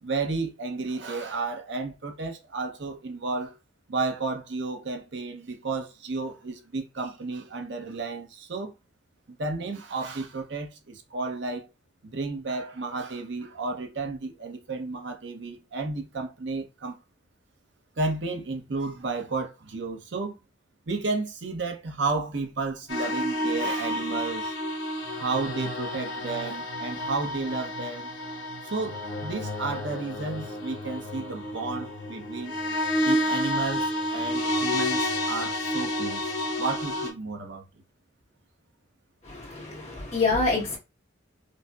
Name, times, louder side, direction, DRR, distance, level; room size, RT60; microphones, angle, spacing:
voice 1, 0.0-3.5 3.9-8.7 9.3-11.6 12.0-17.0 18.0-20.4 20.9-24.5 25.2-28.1 28.6-32.5 33.0-37.6, right 3 dB, 65° right, 0.7 m, -32 dB
sound 1, 22.9-37.1, left 1 dB, 70° left, 0.8 m, -30 dB
voice 2, 39.2-40.8, left 3 dB, 35° left, 1.1 m, -26 dB
5.1 x 2.0 x 2.3 m
head